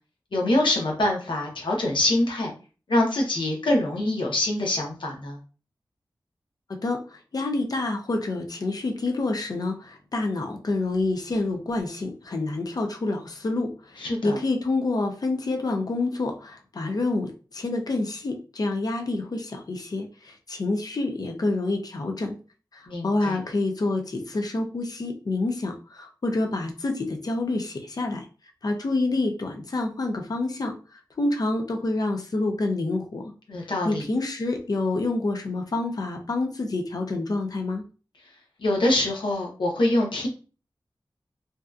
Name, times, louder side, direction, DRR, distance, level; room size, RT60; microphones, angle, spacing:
voice 1, 0.3-2.5 2.9-5.4 14.0-14.4 22.9-23.4 33.5-34.0 38.6-40.3, left 1 dB, 80° left, 0 dB, 0.8 m, -24 dB
voice 2, 6.8-22.4 22.7-28.3 28.6-30.8 31.2-33.3 33.6-37.8, left 2 dB, 50° left, 4 dB, 0.5 m, -28 dB
2.6 x 2.3 x 2.3 m, 0.36 s
wide cardioid pair, 95°, 8 cm